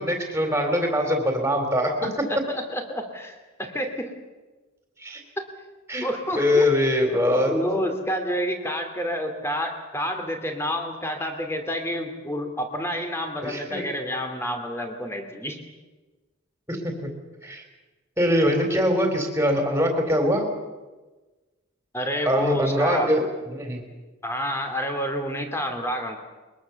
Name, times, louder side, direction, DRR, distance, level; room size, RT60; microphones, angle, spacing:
voice 1, 0.0-2.1 5.0-5.2 5.9-6.1 6.4-7.6 13.4-13.8 16.7-17.1 17.4-17.6 18.2-20.5 22.3-23.3 23.5-23.8, left 1 dB, 10° right, 4 dB, 3.6 m, -23 dB
voice 2, 2.0-4.1 5.4-5.5 6.0-6.7 7.5-15.6 21.9-23.1 24.2-26.2, equal, 10° left, 5 dB, 2.7 m, -29 dB
22.5 x 21.5 x 7.1 m, 1.2 s
head